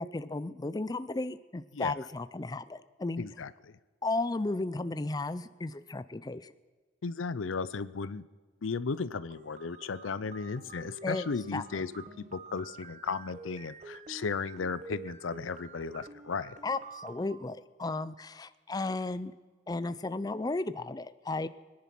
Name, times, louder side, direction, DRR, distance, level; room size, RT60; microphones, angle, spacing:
voice 1, 0.0-3.2 4.0-6.5 11.0-11.3 11.5-11.6 16.6-19.3 19.7-21.5, left 2 dB, 20° left, 14 dB, 0.4 m, -34 dB
voice 2, 3.2-3.7 7.0-8.2 8.6-11.9 12.3-16.6, left 5 dB, 90° left, 16 dB, 0.6 m, -35 dB
sound 1, 9.3-17.3, right 4 dB, 40° right, 1.0 m, -49 dB
22.5 x 10.5 x 6.0 m, 1.3 s
head